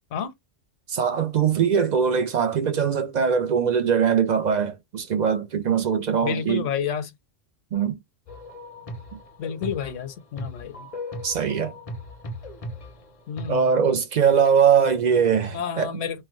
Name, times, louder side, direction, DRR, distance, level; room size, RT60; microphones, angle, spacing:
voice 1, 0.9-6.6 7.7-8.0 9.1-9.2 11.2-11.7 13.5-15.9, right 7 dB, 55° right, 0.5 m, -21 dB
voice 2, 6.2-7.1 9.4-10.9 13.3-13.8 15.5-16.2, left 8 dB, 85° left, 1.0 m, -30 dB
sound 1, 8.3-13.5, left 1 dB, 40° left, 0.5 m, -38 dB
3.1 x 2.2 x 3.0 m
omnidirectional pair, 1.2 m